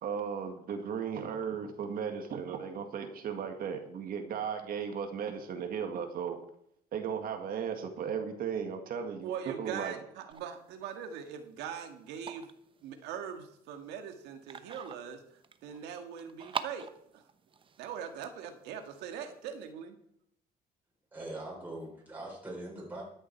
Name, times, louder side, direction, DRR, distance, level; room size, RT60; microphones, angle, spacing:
voice 1, 0.0-6.4 6.9-9.3 9.6-10.0, right 7 dB, 60° right, 5 dB, 1.9 m, -36 dB
voice 2, 9.2-12.5 12.8-15.2 15.6-17.2 17.8-20.0, right 8 dB, 90° right, 6 dB, 1.8 m, -41 dB
sound 1, 10.3-19.7, right 6 dB, 30° right, 0.9 m, -46 dB
voice 3, 21.1-23.0, right 1 dB, 10° right, -3 dB, 3.9 m, -42 dB
13.5 x 10.0 x 4.6 m, 0.72 s
cardioid pair, 110°, 17 cm